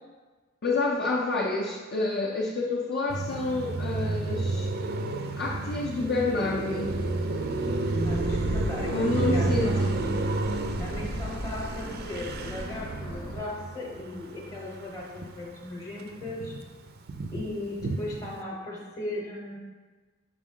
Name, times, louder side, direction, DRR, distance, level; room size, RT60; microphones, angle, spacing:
voice 1, 0.6-4.7 5.4-7.0 8.9-10.1, left 3 dB, 50° left, -2 dB, 0.6 m, -28 dB
Car passing by, 3.1-15.6 15.9-18.4, right 2 dB, 45° right, 0.4 m, -31 dB
sound 1, 6.8-13.4, equal, 75° left, 0.9 m, -37 dB
voice 2, 8.0-9.9 10.8-16.5 17.3-19.6, left 2 dB, 15° left, -2 dB, 0.9 m, -37 dB
6.1 x 4.5 x 3.7 m, 1.4 s
head